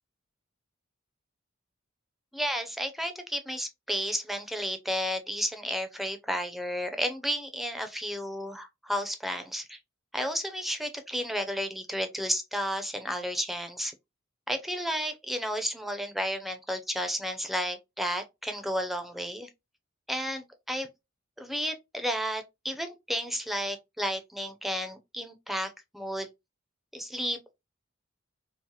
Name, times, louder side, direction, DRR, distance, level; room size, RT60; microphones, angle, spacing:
voice 1, 2.3-9.8 10.1-13.9 14.5-19.5 20.1-20.9 21.4-26.3 26.9-27.5, equal, ahead, 0.5 m, -32 dB
4.6 x 2.0 x 2.8 m
head